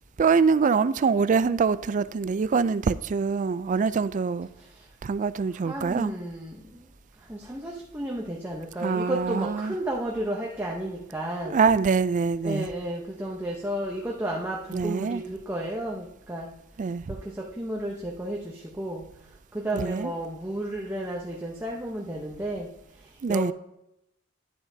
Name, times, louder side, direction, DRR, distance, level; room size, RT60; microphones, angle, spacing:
voice 1, 0.2-4.5 5.0-6.1 8.8-9.7 11.5-12.7 14.7-15.2 16.8-17.0 19.7-20.1 23.2-23.5, right 5 dB, 35° right, 0.3 m, -24 dB
voice 2, 5.7-6.9 7.3-11.6 12.4-16.5 17.1-17.2 17.6-19.0 19.5-22.7 23.3-23.5, right 1 dB, 10° right, 0.8 m, -32 dB
11.0 x 9.6 x 2.7 m
head